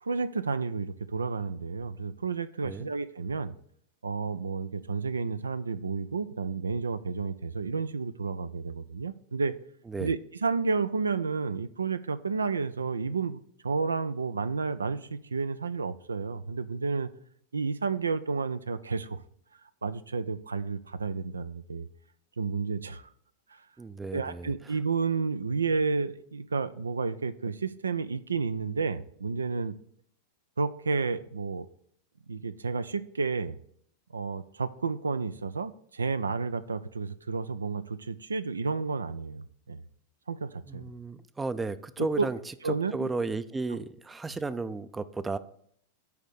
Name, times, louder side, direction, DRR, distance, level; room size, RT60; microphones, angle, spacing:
voice 1, 0.0-3.5 4.0-9.6 10.0-17.1 17.5-19.2 19.8-21.9 22.4-23.1 23.5-23.6 24.1-29.8 30.6-31.7 32.3-33.6 34.1-39.8 40.3-40.8 42.0-42.3 42.6-43.1, right 4 dB, 75° right, 0.4 m, -31 dB
voice 2, 23.8-24.5 40.7-42.4 42.9-45.4, right 3 dB, 10° right, 0.4 m, -33 dB
9.3 x 3.6 x 6.7 m
figure-of-eight pair, 90°, 0 cm